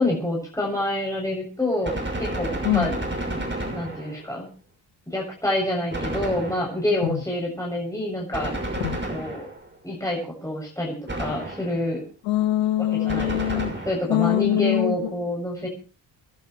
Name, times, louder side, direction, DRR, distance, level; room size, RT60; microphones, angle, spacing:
voice 1, 0.0-3.0 3.2-3.4 3.7-4.5 5.1-8.5 9.1-9.5 9.8-12.0 12.9-13.4 13.8-15.7, left 1 dB, 5° left, 7.2 m, -27 dB
Gunshot gunfire, 1.8-4.3 5.9-7.0 8.3-9.8 11.1-11.9 13.1-14.2, right 1 dB, 20° right, 6.4 m, -31 dB
voice 2, 12.2-13.7 14.1-15.2, left 14 dB, 85° left, 1.4 m, -23 dB
29.0 x 11.0 x 3.2 m
hypercardioid pair, 55°, 50 cm